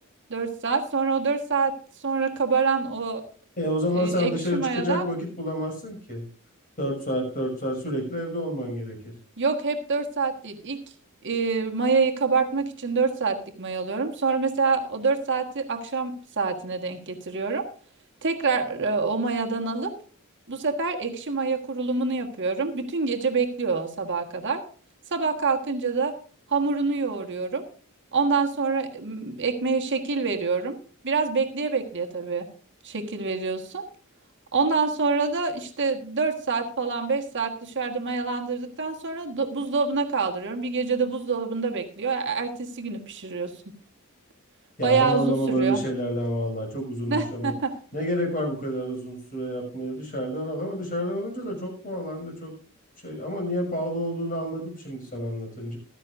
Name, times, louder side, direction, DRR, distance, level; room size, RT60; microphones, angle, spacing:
voice 1, 0.3-1.7 2.0-3.2 4.0-5.1 9.4-10.8 11.2-17.6 18.2-19.9 20.5-24.6 25.1-26.1 26.5-27.6 28.1-30.8 31.0-32.5 32.8-33.8 34.5-43.5 44.8-45.8 47.1-47.7, right 4 dB, 55° right, 3 dB, 1.5 m, -26 dB
voice 2, 3.6-6.2 6.8-9.1 44.8-47.5 47.9-52.5 53.0-55.8, equal, 40° left, 1 dB, 6.1 m, -29 dB
15.0 x 13.5 x 2.6 m, 0.41 s
head